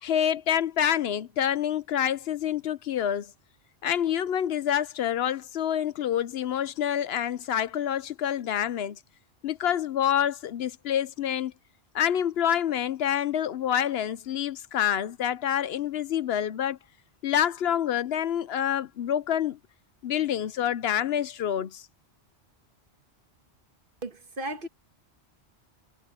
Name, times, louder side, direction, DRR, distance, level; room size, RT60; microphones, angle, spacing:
voice 1, 0.0-3.3 3.8-9.0 9.4-11.5 11.9-16.8 17.2-19.6 20.0-21.9, left 10 dB, 70° left, 0.8 m, -27 dB
voice 2, 24.0-24.7, right 1 dB, 55° right, 1.7 m, -35 dB
omnidirectional pair, 1.1 m